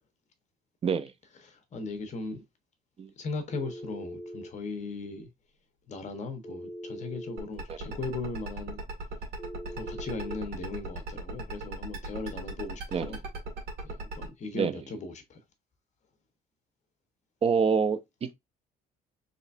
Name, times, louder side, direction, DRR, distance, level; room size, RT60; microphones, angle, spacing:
voice 1, 1.4-2.4 3.2-5.3 5.9-8.8 9.7-13.2 13.8-15.4, left 3 dB, 45° left, 1.3 m, -38 dB
Telephone, 3.5-4.5 6.4-7.5 9.4-10.4, equal, 20° left, 1.5 m, -41 dB
sound 1, 7.4-14.3, right 3 dB, 70° right, 2.0 m, -37 dB
voice 2, 17.4-18.3, right 6 dB, 35° right, 0.7 m, -26 dB
4.1 x 3.3 x 2.6 m
cardioid pair, 110°, 17 cm